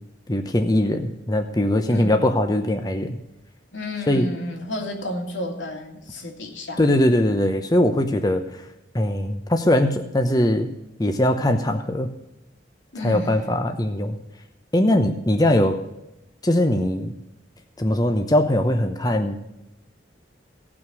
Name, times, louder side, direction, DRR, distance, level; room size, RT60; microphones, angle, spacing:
voice 1, 0.3-3.2 4.1-4.3 6.8-8.4 8.9-10.7 11.0-12.1 13.0-14.2 14.7-15.8 16.4-17.1 17.8-19.4, left 1 dB, 20° left, 6 dB, 0.8 m, -21 dB
voice 2, 1.9-2.3 3.7-7.0 12.9-13.7, left 1 dB, 90° left, 2 dB, 2.7 m, -32 dB
17.0 x 6.2 x 6.2 m, 0.89 s
head